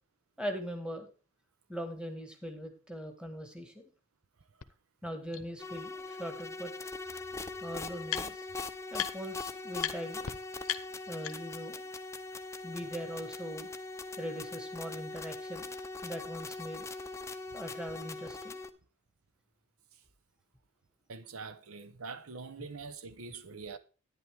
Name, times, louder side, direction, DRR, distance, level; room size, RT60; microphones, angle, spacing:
voice 1, 0.4-1.1 1.7-3.9 5.0-6.7 7.6-8.5 8.9-10.2 11.1-11.8 12.6-13.7 14.2-15.7 16.0-16.9 17.5-18.6, equal, 5° right, 1.7 m, -41 dB
sound 1, 4.6-4.7 5.3-5.4 6.7-6.8 7.0-8.6 8.9-9.4 9.8-9.9 10.2-10.3 10.6-11.7, left 10 dB, 70° left, 0.8 m, -38 dB
sound 2, 5.6-18.7, left 3 dB, 15° left, 0.6 m, -41 dB
voice 2, 21.1-23.8, right 4 dB, 75° right, 0.9 m, -44 dB
11.0 x 10.0 x 3.5 m
head